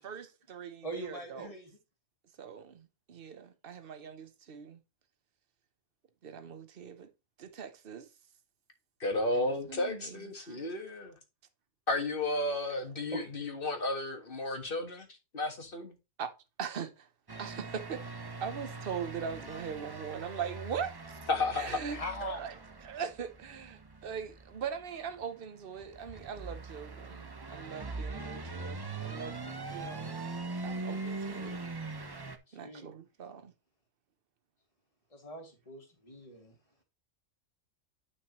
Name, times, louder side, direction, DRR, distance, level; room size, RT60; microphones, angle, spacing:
voice 1, 0.0-1.5 2.4-4.8 6.2-7.1 7.4-8.1 9.3-10.7 16.2-16.3 16.6-17.1 17.4-18.0 18.4-21.2 21.5-22.5 22.8-30.2 30.6-31.6 32.5-33.5, right 7 dB, 50° right, 1.1 m, -41 dB
voice 2, 0.8-1.7 9.3-9.5 13.1-13.3 21.9-22.4 31.4-31.6 32.5-32.9 35.1-36.5, equal, 25° left, 2.3 m, -42 dB
voice 3, 9.0-11.1 11.9-15.1 15.3-15.9 21.3-21.8, left 2 dB, 45° left, 1.8 m, -33 dB
sound 1, 17.3-32.4, right 3 dB, 25° right, 0.6 m, -42 dB
9.5 x 5.9 x 3.1 m
omnidirectional pair, 1.3 m